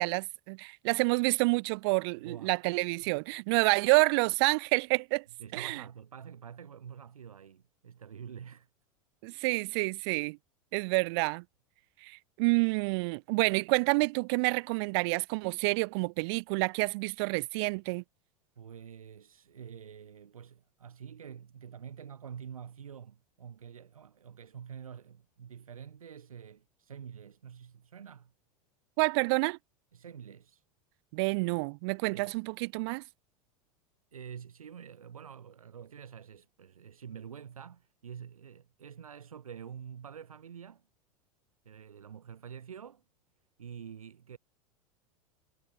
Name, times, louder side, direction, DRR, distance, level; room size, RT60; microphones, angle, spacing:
voice 1, 0.0-5.2 5.5-5.8 9.2-10.4 10.7-11.4 12.0-18.0 29.0-29.6 31.1-33.0, right 29 dB, 45° right, 0.6 m, -28 dB
voice 2, 2.1-3.1 5.4-8.7 18.6-28.3 29.9-30.6 32.1-32.4 34.1-40.8 41.7-43.0 43.6-44.4, right 8 dB, 70° right, 2.0 m, -47 dB
figure-of-eight pair, 85°, 18 cm